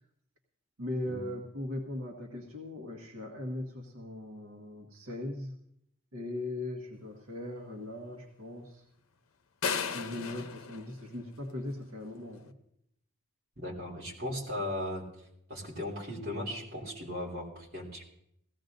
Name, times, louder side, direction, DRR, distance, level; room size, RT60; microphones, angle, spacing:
voice 1, 0.8-5.6 6.1-8.8 9.9-12.5, left 1 dB, 85° right, 1 dB, 1.4 m, -39 dB
sound 1, 9.6-11.8, left 6 dB, 90° left, 0.7 m, -35 dB
voice 2, 13.6-15.1 15.5-18.1, left 1 dB, 45° right, -3 dB, 3.0 m, -37 dB
18.5 x 15.5 x 2.6 m, 0.75 s
head